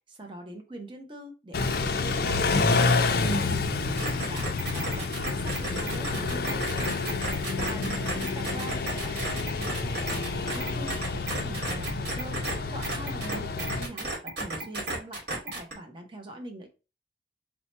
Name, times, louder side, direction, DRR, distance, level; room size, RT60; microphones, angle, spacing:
voice 1, 0.1-2.5 2.8-4.4 4.7-6.9 7.6-12.4 12.7-16.7, right 1 dB, 25° right, 3 dB, 0.7 m, -42 dB
Car / Idling / Accelerating revving vroom, 1.5-13.9, left 3 dB, 55° left, 0.5 m, -29 dB
sound 1, 4.0-12.6 12.8-15.7, right 2 dB, 60° right, 1.7 m, -33 dB
4.5 x 2.2 x 4.0 m, 0.31 s
head